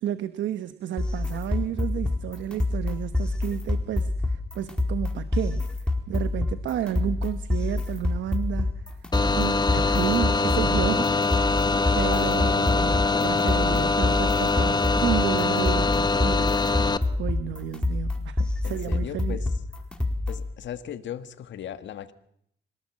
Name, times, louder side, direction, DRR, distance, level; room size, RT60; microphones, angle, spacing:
voice 1, 0.0-5.6 6.1-8.7 9.3-11.4 11.9-16.8 17.2-19.4, right 11 dB, 90° right, 12 dB, 1.1 m, -31 dB
sound 1, 1.0-20.5, left 2 dB, 5° left, 4.5 m, -27 dB
sound 2, 9.1-17.0, left 3 dB, 20° left, 1.3 m, -23 dB
voice 2, 18.6-19.5 20.3-22.1, left 10 dB, 80° left, 10 dB, 1.8 m, -37 dB
25.5 x 19.0 x 7.7 m, 0.69 s
cardioid pair, 95°, 19 cm